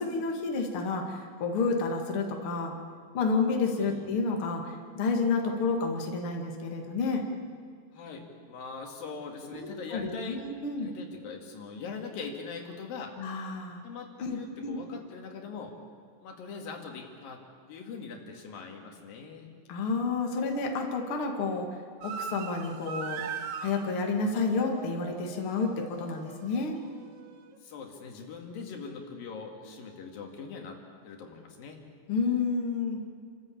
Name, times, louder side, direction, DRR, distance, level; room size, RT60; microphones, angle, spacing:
voice 1, 0.0-2.7 3.1-7.2 9.5-10.9 13.2-13.8 14.2-14.8 19.7-21.7 22.0-23.2 23.6-26.8 32.1-33.0, left 4 dB, 40° left, 2 dB, 2.5 m, -30 dB
voice 2, 3.8-4.1 7.9-10.4 10.8-13.1 13.8-15.7 16.2-17.4 17.7-19.5 27.6-30.8 31.0-31.8, left 5 dB, 75° left, 2 dB, 3.9 m, -41 dB
sound 1, 22.0-27.6, right 6 dB, 65° right, 2.4 m, -41 dB
28.5 x 14.0 x 8.6 m, 2.1 s
omnidirectional pair, 4.1 m